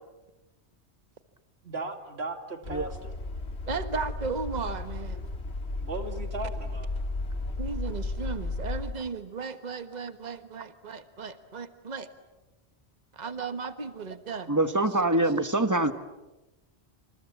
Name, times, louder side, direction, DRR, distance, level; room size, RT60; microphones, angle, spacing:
voice 1, 1.6-3.1 5.7-6.9, right 2 dB, 70° right, 6 dB, 2.9 m, -37 dB
sound 1, 2.6-8.9, left 2 dB, 80° left, 2.5 m, -34 dB
voice 2, 3.7-5.2 7.6-12.1 13.1-15.0, right 4 dB, 40° right, 10 dB, 1.5 m, -35 dB
voice 3, 14.5-15.9, right 2 dB, 15° right, 9 dB, 1.4 m, -24 dB
28.5 x 27.0 x 7.3 m, 1.1 s
omnidirectional pair, 1.1 m